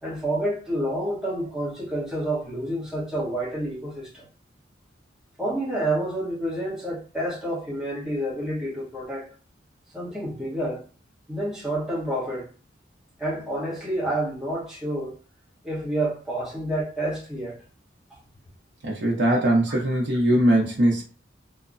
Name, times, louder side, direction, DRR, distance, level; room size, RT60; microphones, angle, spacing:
voice 1, 0.0-4.3 5.4-9.3 9.9-10.8 11.3-12.5 13.2-15.2 15.6-17.6 18.1-18.2 19.7-20.0, right 1 dB, 5° right, 1.0 m, -29 dB
voice 2, 18.8-21.0, right 1 dB, 65° right, 0.6 m, -21 dB
3.0 x 2.0 x 2.5 m
head